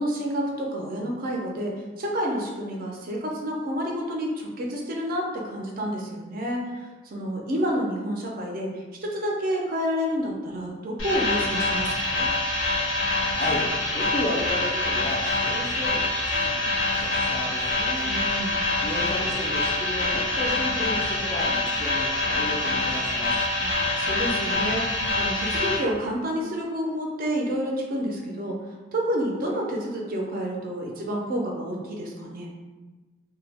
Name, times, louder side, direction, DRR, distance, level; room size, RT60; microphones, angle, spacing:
voice 1, 0.0-8.7 9.0-12.3 18.0-18.6 23.6-28.6 28.9-32.5, equal, 50° right, -1 dB, 0.4 m, -29 dB
sound 1, 11.0-25.8, left 2 dB, 90° left, 0.7 m, -25 dB
voice 2, 13.3-23.4, left 1 dB, 30° left, -1 dB, 0.3 m, -34 dB
2.1 x 2.0 x 3.3 m, 1.3 s
head